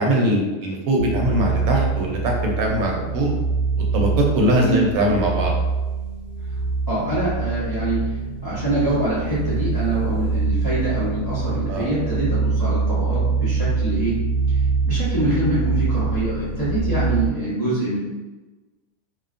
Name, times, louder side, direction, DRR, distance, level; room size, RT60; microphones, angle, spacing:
voice 1, 0.0-3.3 3.9-5.6 11.7-11.9, right 1 dB, 90° right, 0 dB, 1.0 m, -21 dB
sound 1, 1.0-17.3, right 4 dB, 65° right, 0.4 m, -24 dB
voice 2, 6.9-8.1 8.4-14.2 14.5-14.6 14.8-18.0, right 1 dB, 25° left, -11 dB, 0.5 m, -24 dB
2.5 x 2.1 x 2.4 m, 1.2 s
omnidirectional pair, 1.5 m